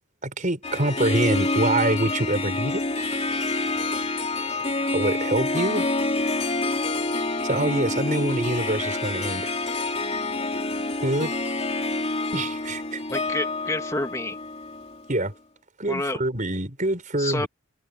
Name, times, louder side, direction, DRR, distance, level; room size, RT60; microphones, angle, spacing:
voice 1, 0.2-2.8 4.8-5.9 7.4-9.5 11.0-11.3 12.3-13.0 15.1-15.3 15.8-17.5, right 1 dB, 40° right, 5.7 m, -25 dB
Harp, 0.6-15.1, left 2 dB, 30° left, 3.1 m, -27 dB
voice 2, 13.1-14.4 15.9-16.2 17.2-17.5, left 2 dB, 15° left, 2.8 m, -29 dB
head